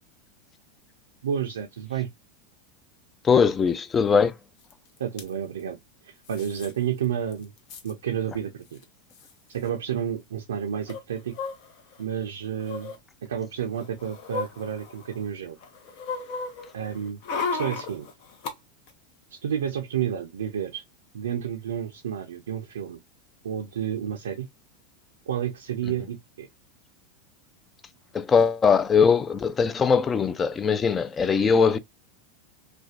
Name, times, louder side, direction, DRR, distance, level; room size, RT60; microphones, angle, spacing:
voice 1, 1.2-2.1 5.0-5.8 6.0-7.5 7.8-8.8 9.5-11.3 12.0-12.9 13.2-15.6 16.7-17.2 17.5-18.1 19.3-20.8 21.1-23.0 23.4-24.5 25.3-26.5, right 9 dB, 85° right, 0.4 m, -30 dB
voice 2, 3.2-4.3 28.1-31.8, left 6 dB, 25° left, 0.3 m, -21 dB
sound 1, 4.7-4.8 5.0-5.3 6.3-6.7 7.0-7.1 7.3-7.9 8.8-8.9 9.1-9.3 10.9-12.0 12.6-13.0 13.6-15.2 15.6-18.5 18.9-19.0, left 4 dB, 60° left, 0.7 m, -35 dB
2.5 x 2.2 x 2.3 m
hypercardioid pair, 105°, 0 cm